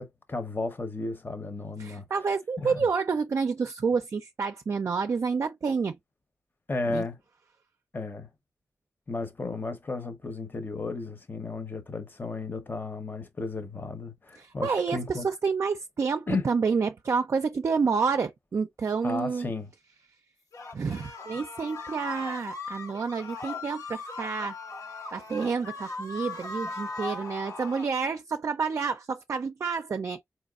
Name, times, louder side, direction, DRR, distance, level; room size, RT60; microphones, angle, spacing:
voice 1, 0.0-2.1 2.6-2.9 6.7-7.2 7.9-8.3 9.1-15.3 16.3-16.5 19.0-19.7, left 3 dB, 35° left, 0.8 m, -34 dB
voice 2, 1.8-6.0 6.9-7.0 14.4-19.5 20.7-24.6 25.1-30.2, right 5 dB, 55° right, 0.4 m, -29 dB
sound 1, 20.5-27.9, left 3 dB, 80° left, 0.9 m, -38 dB
4.1 x 2.9 x 2.3 m
wide cardioid pair, 100°, 6 cm